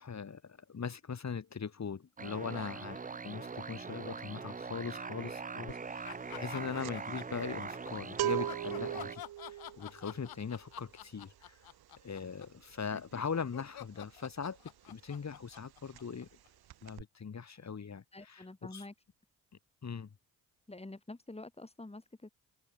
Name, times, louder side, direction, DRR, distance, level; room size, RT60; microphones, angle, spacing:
voice 1, 0.0-11.7 12.0-14.6 14.8-16.3 16.8-18.5 18.7-18.9 19.8-20.1, left 6 dB, 45° left, 4.1 m, -40 dB
sound 1, 2.2-9.2, right 5 dB, 20° right, 0.8 m, -42 dB
sound 2, 5.7-6.0 6.2-14.8 15.1-15.3 15.5-16.4 16.7-17.0, right 13 dB, 75° right, 2.4 m, -40 dB
sound 3, 6.0-7.7 8.2-16.5, left 13 dB, 65° left, 1.3 m, -49 dB
voice 2, 18.1-18.9 20.7-22.3, left 2 dB, 15° left, 4.6 m, -47 dB
supercardioid pair, 55°, 39 cm